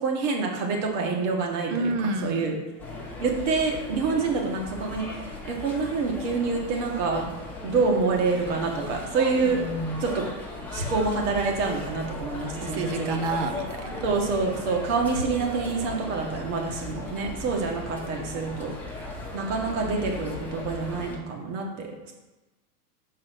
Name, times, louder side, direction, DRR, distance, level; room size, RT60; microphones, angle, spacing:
voice 1, 0.0-1.9 2.2-2.5 3.2-5.1 5.5-7.3 7.6-9.6 10.0-10.2 10.7-13.2 14.0-18.7 19.3-22.1, right 4 dB, 50° right, 1 dB, 1.9 m, -27 dB
voice 2, 1.7-2.6 9.4-10.0 12.6-14.1, right 2 dB, 25° right, 7 dB, 0.5 m, -29 dB
sound 1, 2.8-21.2, left 2 dB, 5° left, 1.0 m, -37 dB
6.0 x 4.7 x 6.0 m, 1.1 s
supercardioid pair, 160°, 47 cm